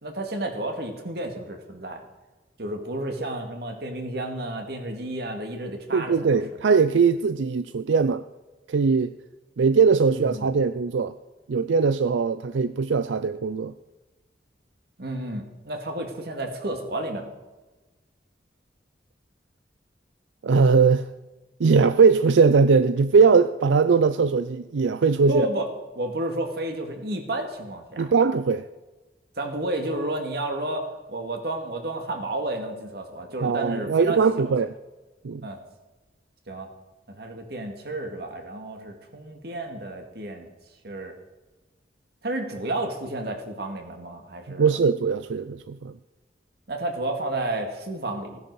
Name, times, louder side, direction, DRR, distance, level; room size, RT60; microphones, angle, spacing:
voice 1, 0.0-2.0 2.6-6.6 10.1-10.5 15.0-17.3 25.3-25.7 25.9-28.1 29.4-34.5 35.4-35.6 36.5-36.7 37.1-40.5 40.8-41.1 42.2-44.7 46.7-48.4, right 1 dB, 60° right, 2.1 m, -31 dB
voice 2, 5.9-8.2 8.7-9.1 9.6-11.1 11.5-13.7 20.4-21.1 21.6-25.5 28.0-28.7 33.4-34.7 35.2-35.4 44.5-45.9, right 5 dB, 90° right, 0.5 m, -20 dB
16.5 x 10.5 x 4.8 m
head